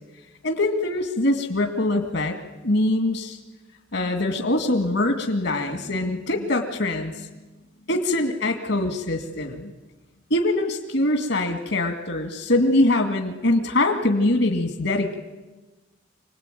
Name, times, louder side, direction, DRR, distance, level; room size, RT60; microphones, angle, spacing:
voice 1, 0.4-2.4 2.6-3.4 3.9-7.3 7.9-9.7 10.3-15.1, left 1 dB, 75° left, 5 dB, 2.2 m, -23 dB
27.0 x 19.0 x 9.1 m, 1.2 s
head